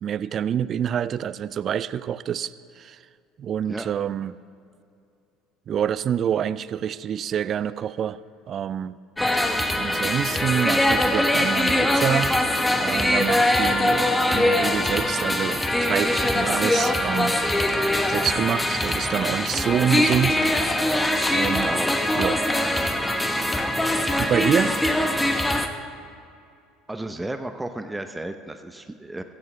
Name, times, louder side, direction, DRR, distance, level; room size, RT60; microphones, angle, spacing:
voice 1, 0.0-3.0 3.4-4.4 5.7-8.2 8.5-9.0 9.7-12.3 12.8-17.4 18.1-20.4 21.3-21.7 22.1-22.4 24.2-24.8, right 9 dB, 45° right, 17 dB, 0.4 m, -26 dB
sound 1, 9.2-25.7, left 1 dB, 10° left, 1.1 m, -22 dB
voice 2, 21.6-22.0 26.9-29.2, right 1 dB, 10° right, 8 dB, 0.8 m, -33 dB
15.5 x 14.5 x 3.4 m, 2.4 s
figure-of-eight pair, 65°, 0 cm